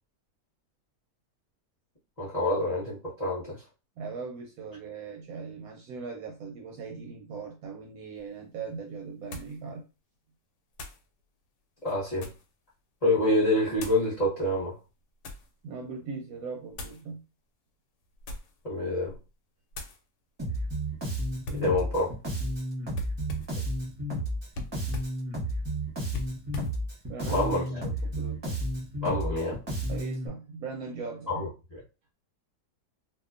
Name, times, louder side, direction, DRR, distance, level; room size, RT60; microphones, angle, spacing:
voice 1, 2.2-3.6 11.8-12.3 13.0-14.7 18.6-19.1 21.5-22.1 27.3-27.6 29.0-29.6 31.3-31.8, left 1 dB, 30° left, 0.8 m, -27 dB
voice 2, 4.0-9.8 15.6-17.2 27.1-27.5 27.8-28.6 29.9-31.5, right 5 dB, 70° right, 0.9 m, -39 dB
sound 1, 8.2-8.3 9.3-9.6 10.7-11.1 11.8-12.5 13.7-14.1 14.8-15.5 16.7-17.0 18.1-18.6 19.0-19.3 19.7-20.0 21.4-21.7 22.9-23.6 24.5-25.2 26.1-26.8, left 1 dB, 85° left, 1.3 m, -41 dB
Bass guitar, 20.4-30.3, right 1 dB, 35° right, 0.4 m, -32 dB
2.8 x 2.2 x 2.4 m
omnidirectional pair, 1.8 m